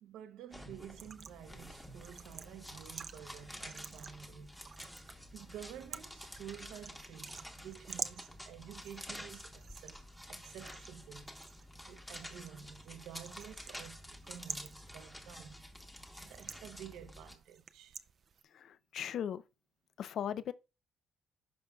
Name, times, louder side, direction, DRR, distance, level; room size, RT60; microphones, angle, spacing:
voice 1, 0.0-4.7 5.3-11.3 11.9-15.7 16.2-18.0, right 9 dB, 85° right, 0.8 m, -51 dB
sound 1, 0.5-17.4, equal, 5° left, 1.0 m, -50 dB
sound 2, 0.9-18.4, right 7 dB, 40° right, 0.4 m, -50 dB
voice 2, 18.5-19.4 20.0-20.5, left 9 dB, 50° left, 0.4 m, -38 dB
11.0 x 5.3 x 2.3 m
cardioid pair, 160°, 0 cm